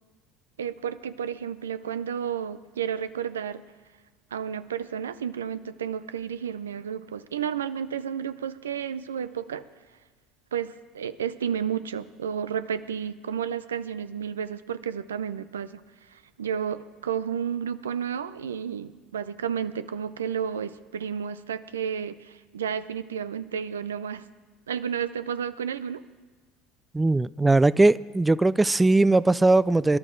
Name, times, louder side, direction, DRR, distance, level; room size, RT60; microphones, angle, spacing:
voice 1, 0.6-3.6 4.3-9.6 10.5-15.8 16.1-24.3 24.7-26.0, right 8 dB, 85° right, 0.5 m, -32 dB
voice 2, 26.9-30.0, right 2 dB, 15° right, 0.3 m, -20 dB
22.5 x 12.0 x 3.8 m
hypercardioid pair, 70°, 0 cm